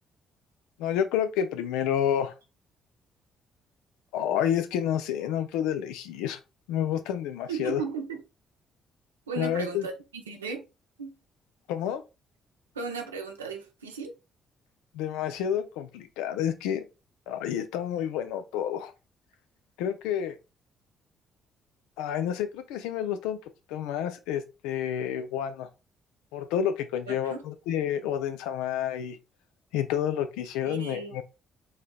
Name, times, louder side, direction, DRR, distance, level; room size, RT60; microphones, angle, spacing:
voice 1, 0.8-2.3 4.1-6.4 6.7-7.8 9.4-9.9 11.7-12.0 14.9-16.8 17.3-18.9 19.8-20.4 22.0-23.4 23.7-25.7 26.3-29.2 29.7-31.2, left 9 dB, 75° left, 0.5 m, -29 dB
voice 2, 7.5-8.2 9.3-10.6 11.0-11.1 12.8-14.1 27.1-27.4 30.6-31.1, right 5 dB, 90° right, 0.6 m, -35 dB
4.8 x 2.9 x 2.2 m
hypercardioid pair, 45°, 0 cm